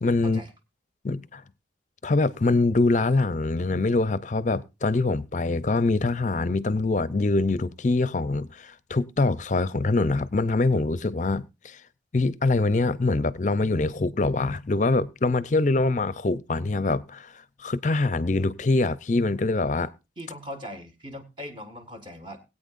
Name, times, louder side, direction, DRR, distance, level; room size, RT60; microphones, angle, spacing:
voice 1, 0.0-0.4 1.0-1.4 2.0-11.8 12.1-19.9, left 3 dB, 40° left, 0.5 m, -24 dB
voice 2, 20.2-22.4, equal, 25° right, 1.8 m, -40 dB
20.5 x 8.8 x 2.5 m
head